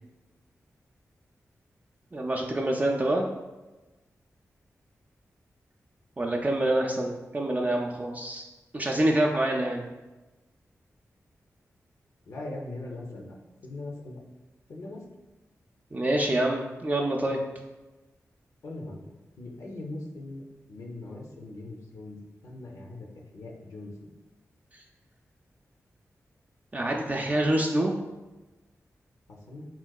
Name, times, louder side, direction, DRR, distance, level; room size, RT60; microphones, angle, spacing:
voice 1, 2.1-3.3 6.2-8.4 8.7-9.9 15.9-17.4 26.7-27.9, right 1 dB, 25° right, 0 dB, 0.3 m, -26 dB
voice 2, 12.3-13.4 13.6-14.2 14.7-15.0 18.6-19.1 19.4-22.2 22.4-23.1 23.3-24.1 29.3-29.7, left 2 dB, 75° left, -1 dB, 0.5 m, -40 dB
3.6 x 2.2 x 2.3 m, 1.1 s
cardioid pair, 45°, 6 cm